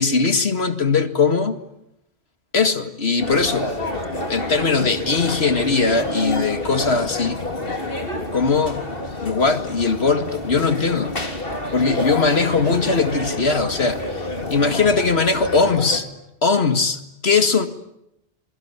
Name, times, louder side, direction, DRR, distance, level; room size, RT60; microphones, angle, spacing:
voice 1, 0.0-1.6 2.5-3.7 4.3-7.4 8.3-8.8 9.2-11.1 11.7-16.1 16.4-17.7, left 4 dB, 75° left, 2.3 m, -20 dB
sound 1, 3.2-16.0, left 2 dB, 60° left, 3.7 m, -28 dB
26.5 x 22.5 x 9.8 m
omnidirectional pair, 1.1 m